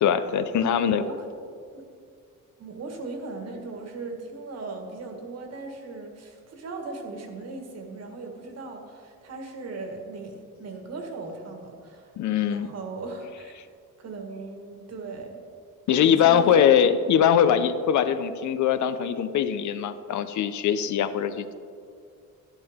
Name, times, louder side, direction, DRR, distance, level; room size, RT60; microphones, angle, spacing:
voice 1, 0.0-1.0 12.2-12.7 15.9-21.5, left 8 dB, 65° left, 11 dB, 0.6 m, -22 dB
voice 2, 0.6-1.3 1.7-1.8 2.6-12.1 12.5-13.6 14.0-15.4 15.9-16.6, right 3 dB, 50° right, 3 dB, 1.6 m, -38 dB
12.0 x 11.5 x 3.6 m, 2.2 s
cardioid pair, 145°, 32 cm